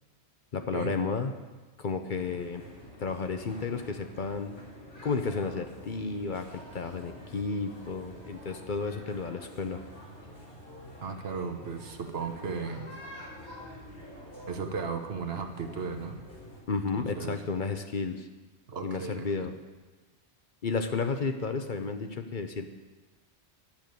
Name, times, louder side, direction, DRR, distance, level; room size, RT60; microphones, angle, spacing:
voice 1, 0.5-1.4 1.8-2.6 3.0-4.5 5.0-9.8 16.7-18.3 18.8-19.5 20.6-22.6, left 4 dB, 50° left, 7 dB, 0.9 m, -32 dB
sound 1, 2.1-16.6, equal, 70° left, 3.3 m, -47 dB
voice 2, 11.0-12.9 14.5-16.2 17.0-17.4 18.7-19.5, right 5 dB, 70° right, 6 dB, 1.2 m, -35 dB
10.5 x 6.8 x 9.2 m, 1.3 s
omnidirectional pair, 1.1 m